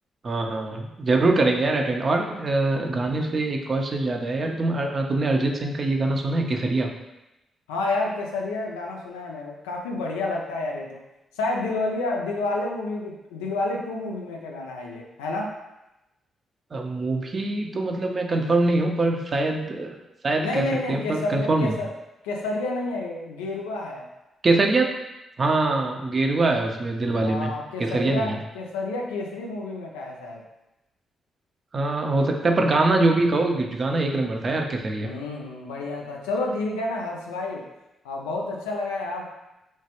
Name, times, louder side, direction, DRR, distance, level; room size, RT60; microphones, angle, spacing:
voice 1, 0.2-6.9 16.7-19.9 20.2-21.8 24.4-24.9 25.4-27.5 27.8-28.4 31.7-35.1, right 2 dB, 45° right, 2 dB, 0.5 m, -23 dB
voice 2, 7.7-11.0 11.3-15.6 20.4-21.9 22.2-24.1 27.2-30.4 35.0-37.7 38.0-39.3, left 2 dB, 85° left, 0 dB, 0.4 m, -29 dB
3.1 x 2.2 x 2.9 m, 0.95 s
hypercardioid pair, 40°, 0 cm